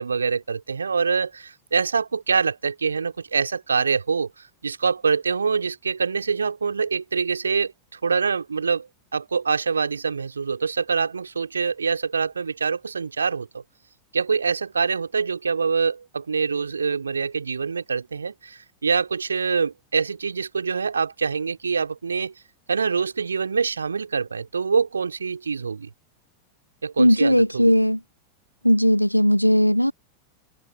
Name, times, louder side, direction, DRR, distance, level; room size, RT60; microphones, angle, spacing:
voice 1, 0.0-13.6 14.1-22.3 22.7-25.9 26.8-27.8, right 5 dB, 75° right, 2.5 m, -25 dB
voice 2, 27.0-28.0 28.6-29.9, equal, 90° left, 1.1 m, -18 dB
figure-of-eight pair, 90°, 0 cm